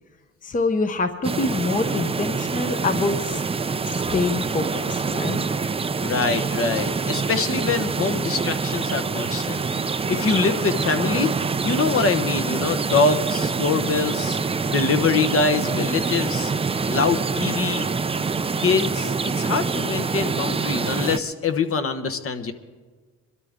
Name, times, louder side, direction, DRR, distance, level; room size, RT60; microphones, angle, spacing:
voice 1, 0.4-3.4 3.9-5.4, left 3 dB, 25° left, 8 dB, 0.9 m, -25 dB
sound 1, 1.2-21.2, right 4 dB, 20° right, 0.5 m, -25 dB
voice 2, 6.0-9.6 10.1-11.3 11.6-14.4 14.7-16.5 16.9-17.9 18.6-22.5, left 4 dB, 50° left, 8 dB, 1.1 m, -24 dB
22.0 x 13.0 x 3.6 m, 1.4 s
cardioid pair, 90°, 30 cm